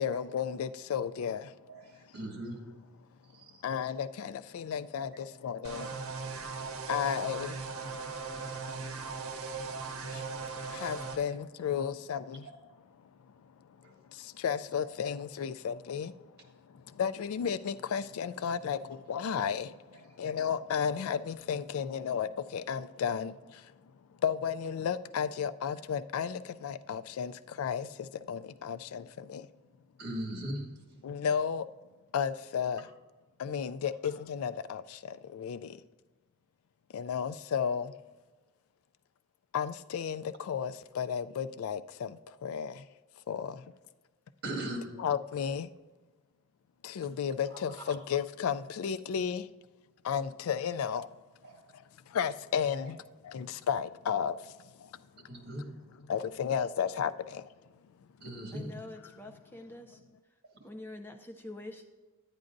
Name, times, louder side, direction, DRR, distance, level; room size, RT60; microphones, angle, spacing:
voice 1, 0.0-1.6 3.6-6.0 6.9-7.6 10.1-10.2 10.7-12.5 14.1-16.2 16.7-23.7 24.2-29.5 31.0-31.7 32.1-32.9 33.4-35.8 36.9-37.9 39.5-42.9 43.3-43.7 45.0-45.7 46.8-49.5 50.0-51.1 51.7-53.0 53.2-54.5 54.8-54.9 55.2-55.5 56.1-57.5, left 7 dB, 80° left, 0.3 m, -33 dB
voice 2, 1.7-2.6 3.3-3.6 5.1-5.2 11.3-11.4 14.8-14.9 30.0-30.6 44.4-44.9 47.5-47.6 51.4-51.7 52.7-52.8 54.4-54.5 55.3-55.7 58.2-58.7, right 1 dB, 50° right, 1.7 m, -39 dB
sound 1, 5.6-11.2, right 4 dB, 85° right, 0.8 m, -38 dB
voice 3, 58.5-60.0 60.6-61.8, left 2 dB, 10° left, 0.4 m, -45 dB
10.5 x 9.6 x 2.6 m
head